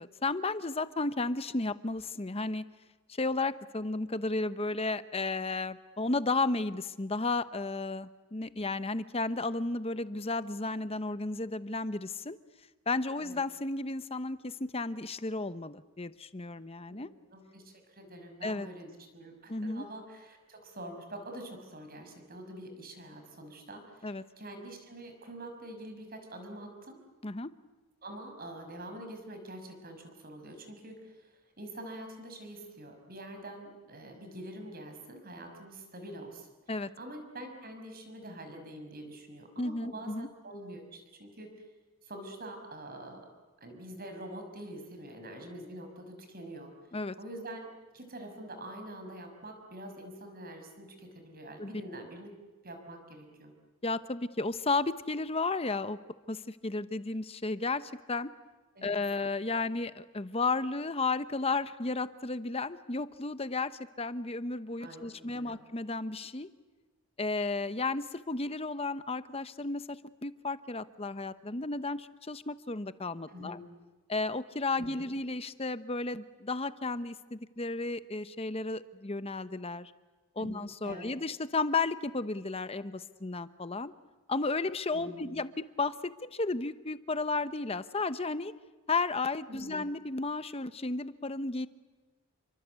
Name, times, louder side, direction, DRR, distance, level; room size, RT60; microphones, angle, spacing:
voice 1, 0.0-2.6 3.2-12.4 12.9-17.1 18.4-18.7 19.5-19.8 24.0-24.2 27.2-27.5 36.7-36.9 39.6-40.3 46.9-47.1 51.6-51.8 53.8-56.0 56.3-58.3 58.8-66.5 67.2-70.0 70.2-73.6 74.1-79.9 80.4-83.9 84.3-88.5 88.9-91.7, left 3 dB, 25° left, 13 dB, 0.9 m, -33 dB
voice 2, 17.3-27.0 28.0-36.5 37.0-41.6 42.0-43.3 43.6-46.7 47.2-52.3 52.6-53.5 58.7-58.9 64.8-65.6 73.3-73.6 74.8-75.1 80.4-80.5 80.8-81.1 84.9-85.3 89.5-89.8, right 1 dB, 45° right, 6 dB, 6.1 m, -45 dB
29.5 x 24.0 x 8.2 m, 1.2 s
head